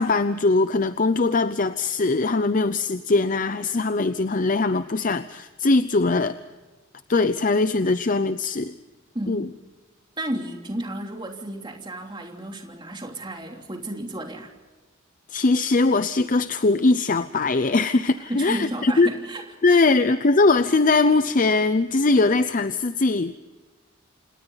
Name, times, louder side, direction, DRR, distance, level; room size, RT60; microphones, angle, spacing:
voice 1, 0.0-6.4 7.1-8.7 9.3-9.5 15.3-19.1 19.6-23.4, left 3 dB, 40° left, 12 dB, 0.6 m, -21 dB
voice 2, 9.1-9.5 10.2-14.5 18.2-19.8, right 1 dB, 20° right, 2 dB, 3.1 m, -33 dB
28.5 x 28.0 x 4.0 m, 1.2 s
head